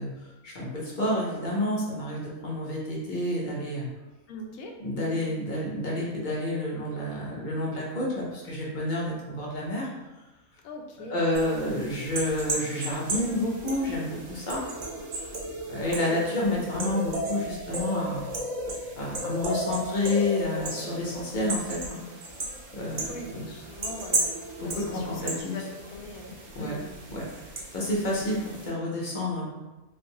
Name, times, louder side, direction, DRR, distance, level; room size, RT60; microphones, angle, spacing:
voice 1, 0.0-3.9 4.8-9.9 11.1-14.6 15.7-18.2 19.0-22.0 22.7-23.0 23.4-23.5 24.6-25.6 26.5-26.8 27.1-27.3 27.7-29.5, left 1 dB, 45° left, -5 dB, 0.7 m, -29 dB
voice 2, 4.3-4.8 5.1-5.3 10.6-11.7 15.8-16.2 23.1-24.3 24.6-27.0, left 1 dB, 75° left, 2 dB, 1.0 m, -42 dB
sound 1, 11.3-28.7, right 1 dB, 80° right, 0.4 m, -35 dB
3.3 x 2.6 x 2.7 m, 1.1 s
omnidirectional pair, 1.6 m